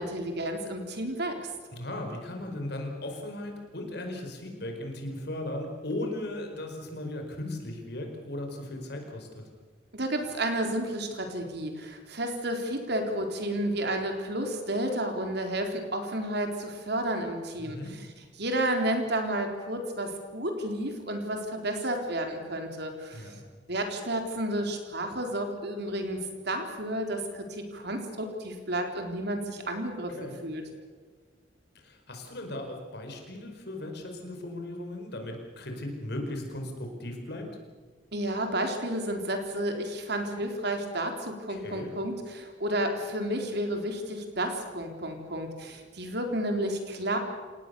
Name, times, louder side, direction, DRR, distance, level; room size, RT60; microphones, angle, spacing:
voice 1, 0.0-1.4 9.9-18.1 18.4-23.4 23.7-30.1 30.4-30.6 38.1-47.2, right 1 dB, 60° right, 4 dB, 3.8 m, -31 dB
voice 2, 1.7-9.4 17.6-18.0 23.1-23.4 30.2-30.4 31.7-37.5 41.5-41.9, left 1 dB, 60° left, 3 dB, 4.9 m, -37 dB
28.0 x 18.5 x 6.9 m, 1.5 s
head